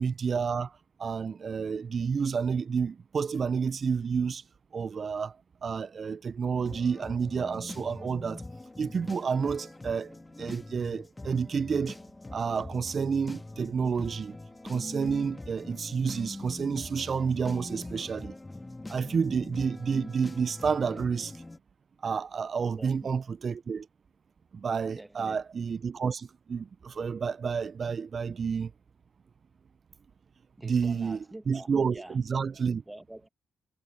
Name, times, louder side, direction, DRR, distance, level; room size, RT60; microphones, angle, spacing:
voice 1, 0.0-4.4 4.7-5.4 5.6-8.4 8.8-12.0 12.3-14.4 14.6-18.4 18.9-21.4 22.0-23.9 24.5-28.7 30.6-32.8, right 6 dB, 50° right, 0.7 m, -30 dB
sound 1, 6.6-21.6, left 2 dB, 20° left, 2.0 m, -43 dB
voice 2, 22.7-23.1 24.9-25.4 30.6-32.2 32.9-33.3, right 1 dB, 10° right, 1.8 m, -46 dB
hypercardioid pair, 45°, 0 cm